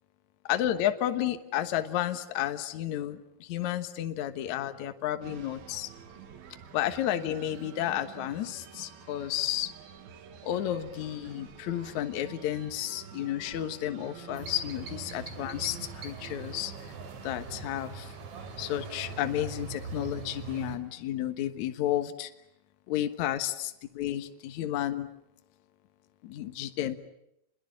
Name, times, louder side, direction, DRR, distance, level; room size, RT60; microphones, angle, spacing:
voice 1, 0.4-5.9 6.7-9.7 10.4-16.7 17.2-18.1 18.6-22.3 22.9-25.1 26.2-26.9, left 12 dB, 60° left, 8 dB, 2.2 m, -32 dB
sound 1, 5.2-19.3, right 8 dB, 70° right, 3.6 m, -49 dB
sound 2, 14.3-20.8, right 4 dB, 50° right, 3.9 m, -42 dB
29.0 x 21.5 x 8.9 m, 0.83 s
omnidirectional pair, 4.7 m